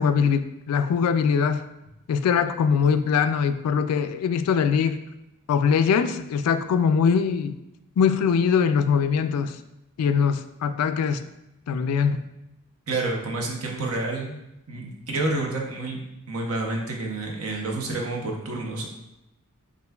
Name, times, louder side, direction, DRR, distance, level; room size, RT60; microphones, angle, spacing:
voice 1, 0.0-1.7 2.1-5.0 5.5-7.6 8.0-9.6 10.0-11.2 11.7-12.3, left 6 dB, 80° left, 13 dB, 0.3 m, -22 dB
voice 2, 12.9-14.4 14.7-16.0 16.3-18.9, right 2 dB, 70° right, 0 dB, 0.8 m, -29 dB
6.6 x 2.5 x 2.3 m, 0.89 s
head